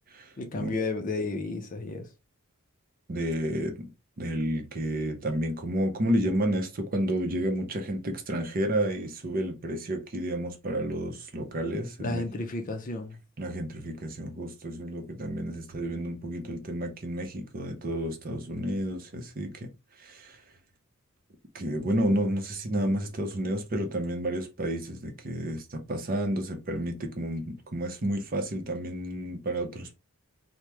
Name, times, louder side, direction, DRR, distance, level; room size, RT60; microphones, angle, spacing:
voice 1, 0.4-2.1 12.0-13.2, left 2 dB, 35° left, 0.5 m, -32 dB
voice 2, 3.1-3.9 4.2-12.2 13.4-19.7 20.0-20.4 21.5-30.0, right 1 dB, 40° right, 0.6 m, -31 dB
3.0 x 2.1 x 3.3 m
head